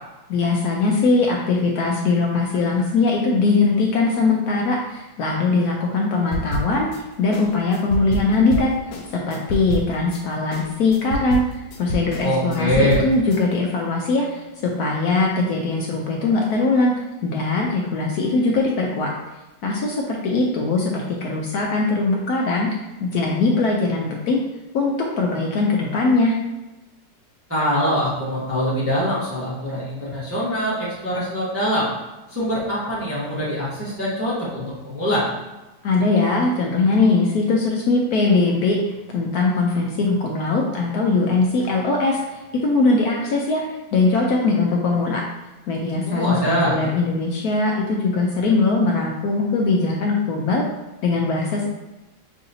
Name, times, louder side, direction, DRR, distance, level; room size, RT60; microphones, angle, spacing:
voice 1, 0.3-6.9 7.2-8.7 9.1-11.4 11.8-16.9 17.2-19.1 19.6-22.7 23.0-24.4 24.7-26.3 35.8-43.6 43.9-45.2 45.7-50.6 51.0-51.7, left 3 dB, 70° left, -1 dB, 0.9 m, -21 dB
sound 1, 6.3-7.0 7.3-10.2 10.5-13.4, equal, 90° left, 1.3 m, -29 dB
voice 2, 12.2-13.0 27.5-31.9 32.3-35.3 46.1-46.8, equal, 15° right, -7 dB, 0.6 m, -23 dB
5.7 x 2.7 x 2.7 m, 1.1 s
omnidirectional pair, 1.9 m